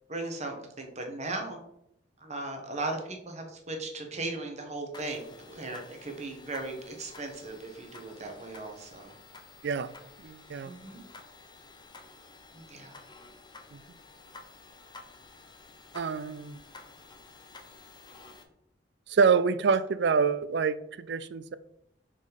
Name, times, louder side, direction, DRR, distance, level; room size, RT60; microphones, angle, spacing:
voice 1, 0.1-1.6 2.2-9.1 10.6-11.0 12.5-13.0, right 2 dB, 40° right, 3 dB, 1.2 m, -37 dB
sound 1, 4.9-18.4, left 3 dB, 25° left, 0.8 m, -52 dB
voice 2, 10.2-10.7 13.7-13.8 15.9-16.6 19.1-21.5, right 5 dB, 65° right, 14 dB, 0.4 m, -26 dB
5.2 x 4.2 x 5.1 m, 0.77 s
head